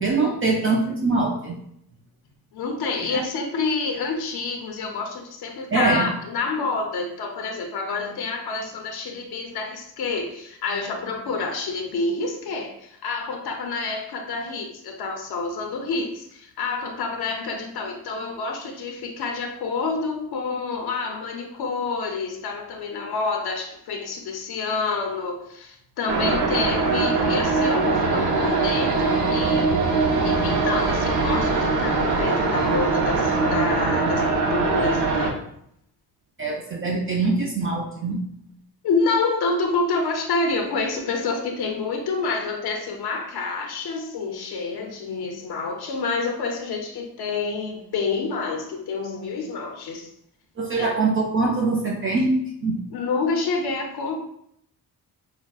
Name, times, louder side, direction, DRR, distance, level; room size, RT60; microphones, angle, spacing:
voice 1, 0.0-1.6 3.1-3.2 5.7-6.1 36.4-38.2 50.6-52.3 52.6-52.8, right 3 dB, 35° right, -1 dB, 0.4 m, -23 dB
voice 2, 2.5-29.7 30.2-35.4 38.8-50.1 50.8-50.9 52.9-54.2, left 4 dB, 65° left, 2 dB, 0.6 m, -28 dB
sound 1, 26.1-35.3, right 3 dB, 75° right, 0.7 m, -22 dB
5.6 x 2.0 x 2.3 m, 0.72 s
cardioid pair, 155°, 40 cm